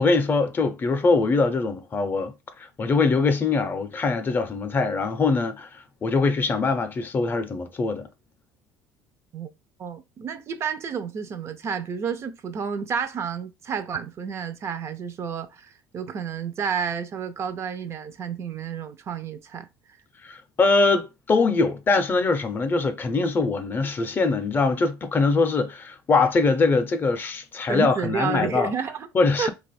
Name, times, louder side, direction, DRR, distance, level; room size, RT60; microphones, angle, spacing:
voice 1, 0.0-8.1 20.2-28.7 29.1-29.5, left 3 dB, 30° left, 0.5 m, -23 dB
voice 2, 9.8-19.7 27.7-29.1 29.4-29.5, right 6 dB, 40° right, 0.4 m, -30 dB
2.5 x 2.3 x 4.1 m
supercardioid pair, 105°, 7 cm